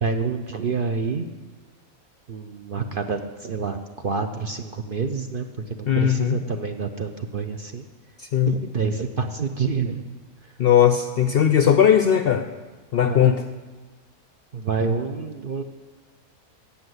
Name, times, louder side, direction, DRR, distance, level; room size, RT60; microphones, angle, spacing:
voice 1, 0.0-1.3 2.3-7.9 8.5-10.1 13.0-13.4 14.5-15.6, right 5 dB, 50° right, 6 dB, 0.7 m, -27 dB
voice 2, 5.9-6.4 8.2-8.5 10.6-12.4 12.9-13.4, left 9 dB, 60° left, 8 dB, 0.6 m, -18 dB
17.0 x 5.9 x 8.0 m, 1.3 s
omnidirectional pair, 1.5 m